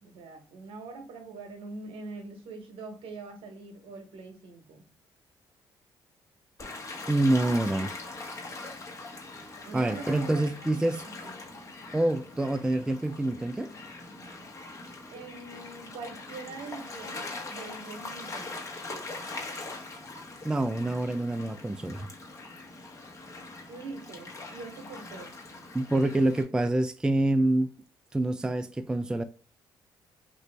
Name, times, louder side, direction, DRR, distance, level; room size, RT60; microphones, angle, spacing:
voice 1, 0.0-4.8 9.6-11.4 15.1-18.7 23.7-25.3, right 3 dB, 75° right, 1.0 m, -43 dB
Gull seagull / Waves surf, 6.6-26.4, left 3 dB, 35° left, 1.0 m, -42 dB
voice 2, 7.1-7.9 9.7-11.0 11.9-13.7 20.4-22.1 25.7-27.7 28.1-29.2, right 1 dB, 10° right, 0.3 m, -26 dB
3.1 x 2.5 x 3.2 m
cardioid pair, 80°, 9 cm